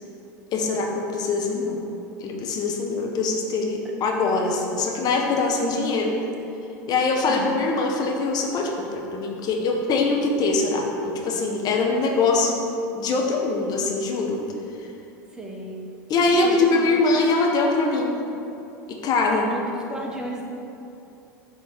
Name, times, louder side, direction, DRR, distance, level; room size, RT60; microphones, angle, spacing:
voice 1, 0.5-1.8 2.2-6.2 6.9-12.6 12.9-14.4 14.8-14.9 16.1-18.2 18.9-19.5, left 3 dB, 40° left, 1 dB, 1.3 m, -23 dB
voice 2, 7.3-7.6 15.3-15.8 16.4-16.9 19.5-20.4, right 1 dB, 5° right, -2 dB, 1.4 m, -34 dB
7.0 x 4.2 x 6.2 m, 2.8 s
hypercardioid pair, 90°, 10 cm